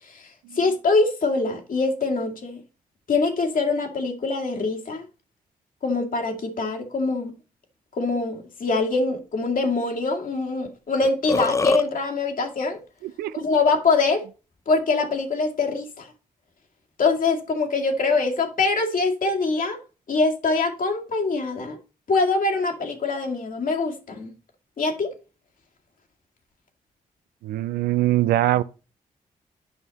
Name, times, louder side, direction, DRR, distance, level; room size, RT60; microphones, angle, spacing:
voice 1, 0.5-2.6 3.1-5.1 5.8-7.3 7.9-12.8 13.3-14.2 14.7-16.1 17.0-19.8 20.1-21.8 22.1-24.3 24.8-25.1, left 3 dB, 60° left, 2.2 m, -24 dB
Burping eructation, 10.6-10.7 11.0-11.8, left 3 dB, 20° left, 0.4 m, -23 dB
voice 2, 13.0-13.4 27.4-28.6, right 15 dB, 90° right, 0.5 m, -23 dB
8.1 x 5.7 x 4.1 m
supercardioid pair, 45°, 16 cm